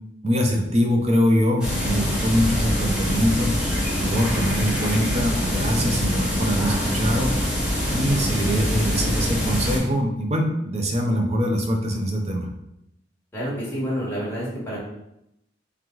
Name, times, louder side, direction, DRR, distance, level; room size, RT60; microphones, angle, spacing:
voice 1, 0.2-3.5 4.0-7.3 7.9-12.5, equal, 35° right, 2 dB, 0.6 m, -23 dB
sound 1, 1.6-9.8, equal, 5° right, 1.1 m, -24 dB
voice 2, 13.3-14.8, equal, 10° left, -7 dB, 1.4 m, -28 dB
3.5 x 3.0 x 3.8 m, 0.83 s
head